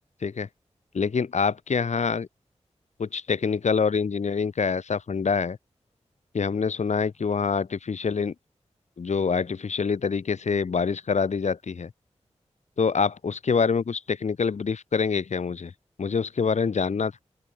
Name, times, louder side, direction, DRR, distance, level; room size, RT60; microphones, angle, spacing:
voice 1, 0.9-2.3 3.0-5.6 6.3-8.3 9.0-11.9 12.8-15.7 16.0-17.2, left 5 dB, 80° left, 4.1 m, -25 dB
open air
cardioid pair, 60°, 12 cm